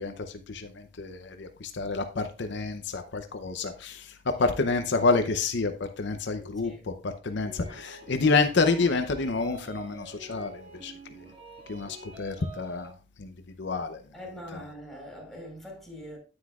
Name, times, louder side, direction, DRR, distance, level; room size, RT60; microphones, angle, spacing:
voice 1, 0.0-10.9 11.7-12.9 13.2-13.3 13.6-14.0 14.5-14.7, left 3 dB, 65° left, 0.7 m, -28 dB
voice 2, 6.3-6.8 14.1-16.2, equal, ahead, 4.3 m, -43 dB
sound 1, 7.4-12.9, right 2 dB, 30° right, 2.0 m, -47 dB
9.6 x 9.6 x 2.4 m
head